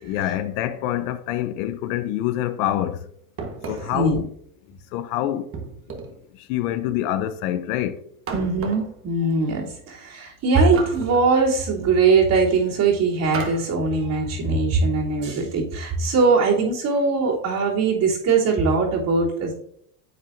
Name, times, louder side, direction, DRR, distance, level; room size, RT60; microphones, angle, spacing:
voice 1, 0.0-3.0 3.7-4.3 4.9-5.5 6.5-8.0, left 12 dB, 65° left, 0.8 m, -26 dB
sound 1, 3.4-4.1 5.5-6.2 8.3-8.9 10.6-11.3 13.3-13.7, right 4 dB, 30° right, 1.3 m, -34 dB
voice 2, 8.3-19.5, right 4 dB, 45° right, 3.2 m, -21 dB
9.6 x 7.4 x 2.6 m
supercardioid pair, 110°, 45 cm